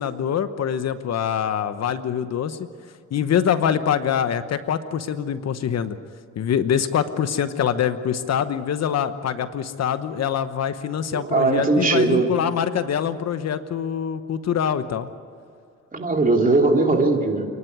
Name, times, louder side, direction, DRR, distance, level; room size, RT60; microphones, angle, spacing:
voice 1, 0.0-2.6 3.1-6.0 6.4-15.1, left 8 dB, 60° left, 11 dB, 1.0 m, -24 dB
voice 2, 11.1-12.4 15.9-17.5, right 3 dB, 30° right, 2 dB, 2.8 m, -19 dB
28.0 x 11.5 x 9.5 m, 2.4 s
cardioid pair, 90°, 30 cm